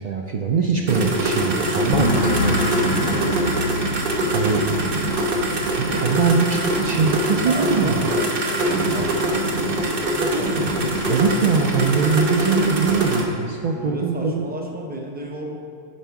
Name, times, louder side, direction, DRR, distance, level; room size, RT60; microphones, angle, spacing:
voice 1, 0.0-3.0 4.3-4.6 5.8-8.1 11.1-14.5, right 5 dB, 75° right, 1 dB, 0.3 m, -22 dB
sound 1, 0.9-13.2, right 1 dB, 50° right, 1.0 m, -23 dB
sound 2, 1.9-9.4 9.7-10.2, left 2 dB, 85° left, 1.0 m, -29 dB
voice 2, 7.4-10.7 13.7-15.6, equal, 10° right, 0 dB, 0.6 m, -32 dB
7.4 x 5.4 x 4.7 m, 2.5 s
omnidirectional pair, 1.3 m